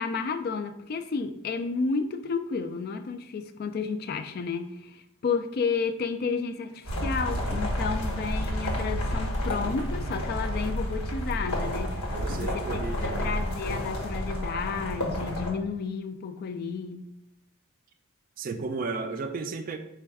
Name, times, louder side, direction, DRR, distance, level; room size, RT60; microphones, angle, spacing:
voice 1, 0.0-11.9 12.3-17.1, left 5 dB, 45° left, 0.3 m, -32 dB
sound 1, 6.8-15.5, equal, 85° left, 1.2 m, -30 dB
voice 2, 12.1-13.3 18.4-19.8, right 4 dB, 40° right, 0.4 m, -34 dB
4.3 x 2.3 x 4.6 m
head